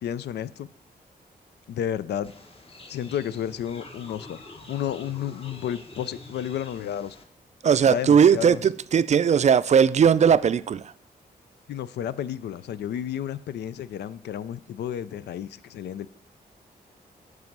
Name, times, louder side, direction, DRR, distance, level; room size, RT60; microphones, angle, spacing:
voice 1, 0.0-0.7 1.7-2.3 2.9-4.4 4.7-7.2 7.8-8.6 11.7-16.1, left 10 dB, 85° left, 0.4 m, -32 dB
sound 1, 2.2-7.2, left 2 dB, 35° left, 1.3 m, -46 dB
voice 2, 7.6-10.9, right 7 dB, 45° right, 0.4 m, -19 dB
9.5 x 4.9 x 6.0 m
cardioid pair, 85°, 17 cm